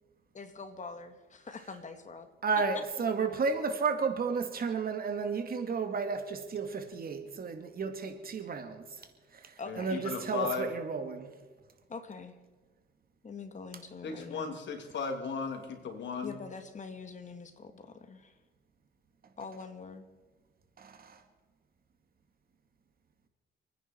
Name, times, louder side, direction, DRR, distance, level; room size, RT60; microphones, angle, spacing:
voice 1, 0.3-2.3 2.6-2.7 9.6-10.3 11.9-12.3 13.2-14.6 16.2-18.4 19.4-20.1, left 4 dB, 40° left, 8 dB, 2.1 m, -44 dB
voice 2, 2.4-8.8 9.4-11.3 20.8-21.2, right 5 dB, 50° right, 6 dB, 2.3 m, -32 dB
voice 3, 9.7-10.7 14.0-16.4, left 5 dB, 65° left, 4 dB, 3.1 m, -36 dB
29.5 x 10.0 x 4.6 m, 1.4 s
cardioid pair, 90°, 20 cm